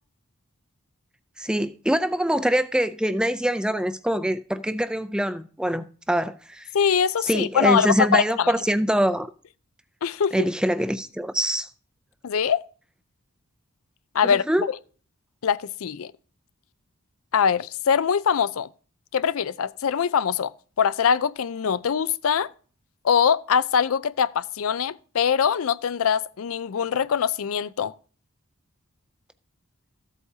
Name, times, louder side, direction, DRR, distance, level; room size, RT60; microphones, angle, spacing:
voice 1, 1.4-6.7 7.3-9.3 10.3-11.7 14.2-14.7, equal, 5° right, 0.5 m, -24 dB
voice 2, 6.7-8.5 10.0-10.5 12.2-12.6 14.1-14.7 15.4-16.1 17.3-18.7 19.1-20.5 20.8-22.5 23.0-27.9, left 7 dB, 70° left, 0.4 m, -23 dB
14.0 x 8.1 x 2.8 m
head